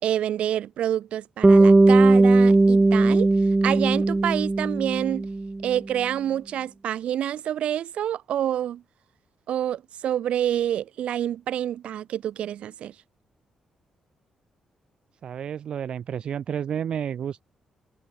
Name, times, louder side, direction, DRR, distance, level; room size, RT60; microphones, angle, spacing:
voice 1, 0.0-3.3 3.6-5.3 5.6-8.8 9.5-12.9, right 10 dB, 70° right, 4.2 m, -27 dB
Bass guitar, 1.4-5.7, right 2 dB, 15° right, 0.4 m, -18 dB
voice 2, 15.2-17.4, right 8 dB, 55° right, 3.4 m, -30 dB
wide cardioid pair, 165°, 2 cm